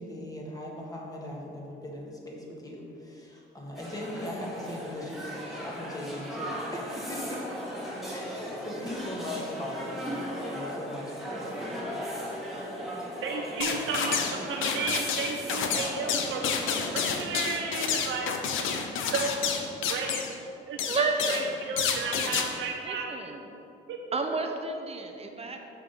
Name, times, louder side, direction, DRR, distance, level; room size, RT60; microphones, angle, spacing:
voice 1, 0.0-7.4 8.0-11.8, left 1 dB, 20° left, -3 dB, 1.7 m, -39 dB
sound 1, 3.7-16.9, equal, ahead, 1.8 m, -38 dB
voice 2, 13.2-14.2 14.4-16.5 16.9-19.3 19.9-20.2 20.7-23.1 23.9-24.0, right 4 dB, 80° right, 0 dB, 0.7 m, -33 dB
sound 2, 13.6-14.4 14.6-20.3 20.8-21.5 21.8-22.5, left 7 dB, 85° left, 0.7 m, -29 dB
voice 3, 20.9-21.5 22.8-23.4 24.1-25.6, right 3 dB, 30° right, 4 dB, 0.7 m, -31 dB
6.5 x 5.7 x 5.2 m, 2.7 s
cardioid pair, 90°, 20 cm